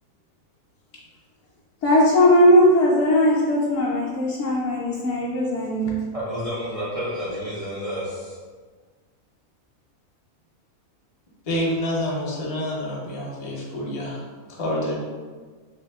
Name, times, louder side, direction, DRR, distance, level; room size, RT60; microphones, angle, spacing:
voice 1, 1.8-6.0, left 1 dB, 65° left, -7 dB, 0.8 m, -18 dB
voice 2, 6.1-8.4, equal, 60° right, -8 dB, 0.3 m, -30 dB
voice 3, 11.5-14.2 14.5-14.9, left 1 dB, 40° left, -4 dB, 0.5 m, -27 dB
3.0 x 2.7 x 3.4 m, 1.5 s
omnidirectional pair, 1.6 m